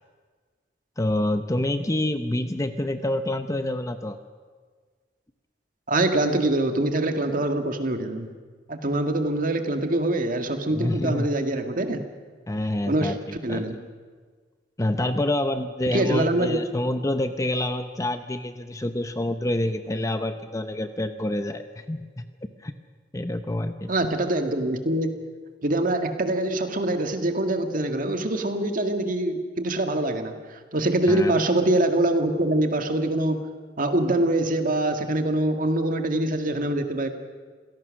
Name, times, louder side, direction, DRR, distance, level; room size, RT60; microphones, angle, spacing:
voice 1, 1.0-4.2 10.7-11.3 12.5-13.6 14.8-22.3 22.6-22.7 23.1-23.9 31.1-31.4, left 1 dB, 20° left, 9 dB, 0.7 m, -27 dB
voice 2, 5.9-8.3 8.7-12.0 12.8-13.1 13.4-13.8 15.9-16.6 23.9-25.1 25.6-33.4 33.8-37.1, right 1 dB, 50° right, 6 dB, 1.8 m, -24 dB
27.0 x 17.0 x 6.4 m, 1.5 s
head